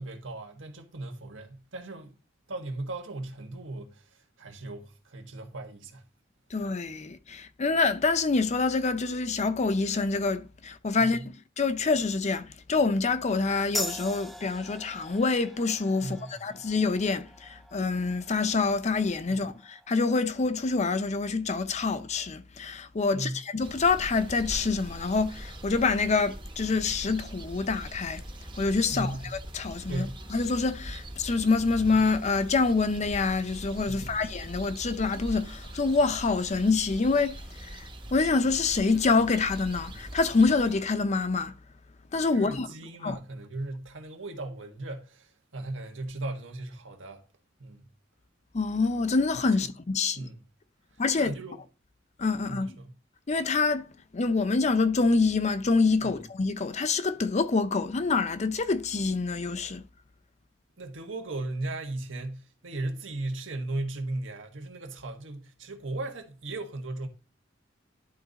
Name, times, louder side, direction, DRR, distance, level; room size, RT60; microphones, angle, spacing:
voice 1, 0.0-2.1 2.5-6.0 11.0-11.3 16.0-16.5 19.3-19.5 23.1-23.4 28.9-29.3 29.9-30.2 33.8-34.2 42.3-47.2 47.6-47.8 49.5-49.7 50.1-50.4 51.1-51.6 52.4-52.9 56.0-56.1 60.8-67.1, right 2 dB, 90° right, 1.5 m, -37 dB
voice 2, 6.5-11.2 11.6-28.2 28.6-29.2 29.5-37.3 37.6-37.8 38.1-41.5 42.1-42.7 43.0-43.2 48.5-50.2 51.0-51.3 52.2-52.7 53.3-53.9 54.1-59.8, left 4 dB, 40° left, 0.6 m, -26 dB
sound 1, 13.7-20.8, equal, ahead, 0.6 m, -41 dB
sound 2, 23.6-40.8, right 1 dB, 25° right, 0.9 m, -42 dB
11.5 x 3.8 x 4.0 m
head